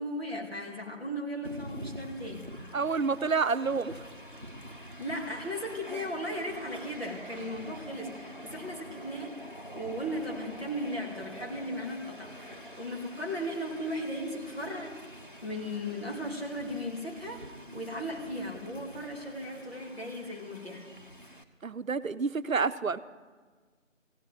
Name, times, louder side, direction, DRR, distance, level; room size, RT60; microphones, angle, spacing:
voice 1, 0.0-2.5 5.0-9.4 9.7-15.0 15.4-20.9, equal, 50° left, -1 dB, 2.4 m, -37 dB
Train, 1.4-21.4, equal, 40° right, 0.8 m, -46 dB
voice 2, 2.7-4.0 21.6-23.0, right 4 dB, 85° right, 13 dB, 0.7 m, -29 dB
15.5 x 8.3 x 9.2 m, 1.4 s
figure-of-eight pair, 175°, 39 cm